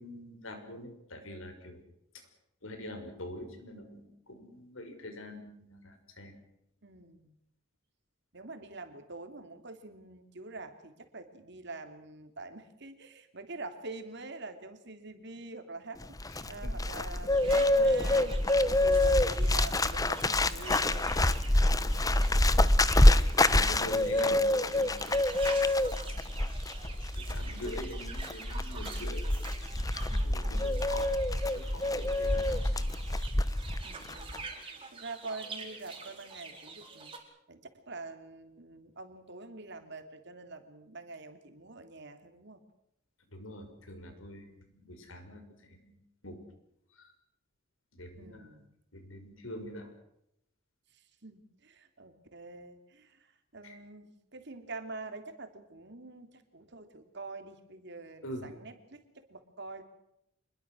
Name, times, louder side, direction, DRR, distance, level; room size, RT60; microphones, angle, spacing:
voice 1, 0.0-1.8 2.6-6.3 21.8-22.0 22.3-22.5 23.0-25.5 26.8-29.2 29.8-31.1 31.5-32.9 43.3-45.9 46.2-46.4 47.9-48.5 48.9-49.9 53.6-53.7 58.2-58.5, left 1 dB, 80° left, 6 dB, 6.0 m, -44 dB
voice 2, 6.8-7.4 8.3-16.2 16.5-21.1 30.1-30.8 33.8-34.5 34.9-37.1 37.5-37.6 37.9-42.6 48.2-48.8 51.2-53.3 53.5-59.8, right 3 dB, 55° right, 7 dB, 3.1 m, -46 dB
Bird, 16.0-33.8 34.1-34.4, left 1 dB, 20° left, 1.0 m, -26 dB
sound 1, 17.3-37.2, right 4 dB, 25° right, 4.8 m, -47 dB
26.5 x 22.0 x 6.4 m, 0.79 s
head